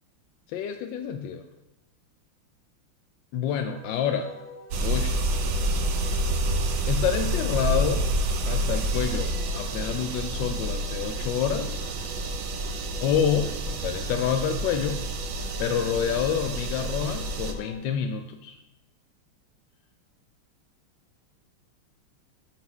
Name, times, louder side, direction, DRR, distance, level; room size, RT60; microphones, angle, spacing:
voice 1, 0.5-1.4 3.3-4.3 4.8-5.2 6.9-8.1 8.4-11.8 13.0-15.0 15.6-18.6, left 8 dB, 75° left, 6 dB, 1.1 m, -28 dB
Wind instrument woodwind instrument, 3.7-17.8, left 1 dB, 20° right, 1.6 m, -46 dB
sound 1, 4.7-17.5, right 1 dB, 70° right, 1.3 m, -28 dB
8.2 x 4.4 x 6.1 m, 0.95 s
omnidirectional pair, 2.3 m